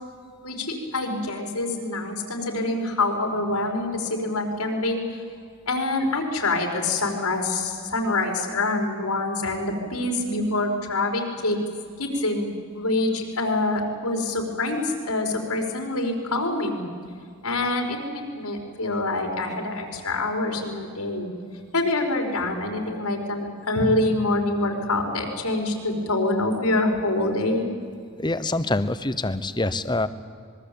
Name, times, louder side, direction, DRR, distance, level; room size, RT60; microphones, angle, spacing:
voice 1, 0.4-5.2 5.7-11.6 12.0-16.8 17.4-21.3 21.7-27.7, left 2 dB, 85° left, 2 dB, 5.0 m, -26 dB
voice 2, 28.2-30.1, left 2 dB, 20° left, 13 dB, 0.9 m, -25 dB
25.5 x 22.5 x 8.7 m, 2.1 s
head